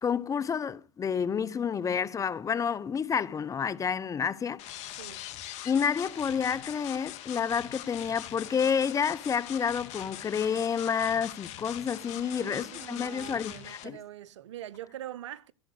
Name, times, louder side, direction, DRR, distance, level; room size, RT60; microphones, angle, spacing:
voice 1, 0.0-4.6 5.6-14.0, left 7 dB, 20° left, 0.8 m, -29 dB
sound 1, 4.6-13.8, left 13 dB, 45° left, 2.0 m, -42 dB
voice 2, 4.9-5.3 12.0-15.5, right 12 dB, 70° right, 0.9 m, -43 dB
15.0 x 7.8 x 8.3 m
hypercardioid pair, 95°, 16 cm